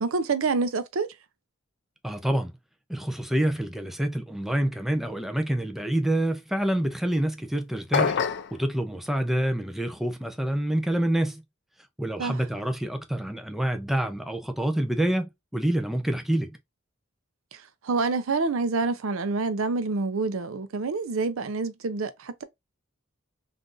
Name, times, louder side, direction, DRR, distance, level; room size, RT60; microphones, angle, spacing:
voice 1, 0.0-1.1 12.2-12.4 17.8-22.4, right 3 dB, 80° right, 0.5 m, -27 dB
voice 2, 2.0-2.5 2.9-8.2 8.5-11.4 12.0-16.5, right 1 dB, ahead, 0.4 m, -27 dB
sound 1, 7.9-8.6, left 6 dB, 60° left, 0.4 m, -24 dB
3.7 x 2.5 x 2.4 m
head